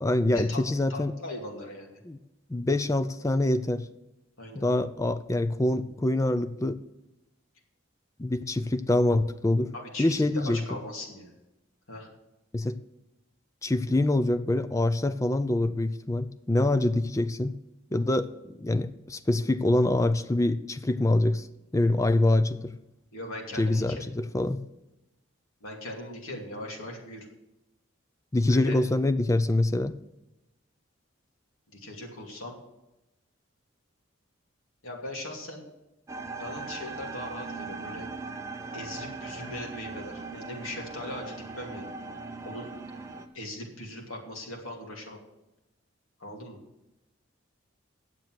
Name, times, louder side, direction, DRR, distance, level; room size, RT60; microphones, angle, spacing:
voice 1, 0.0-1.1 2.0-2.2 2.5-3.9 4.6-6.8 8.2-9.7 10.0-10.6 12.5-12.8 13.6-17.5 17.9-21.5 21.7-22.7 23.6-24.6 28.3-29.9, left 1 dB, 15° left, 12 dB, 0.4 m, -25 dB
voice 2, 0.9-2.0 4.4-4.6 9.7-11.3 11.9-12.1 23.1-24.0 25.6-27.3 28.5-28.8 31.7-32.6 34.8-35.6 36.4-38.1 38.7-41.9 42.4-42.7 43.3-45.2 46.2-46.6, left 1 dB, 80° left, 0 dB, 2.6 m, -39 dB
sound 1, 36.1-43.3, right 3 dB, 15° right, 0.7 m, -39 dB
9.5 x 7.6 x 7.7 m, 0.96 s
head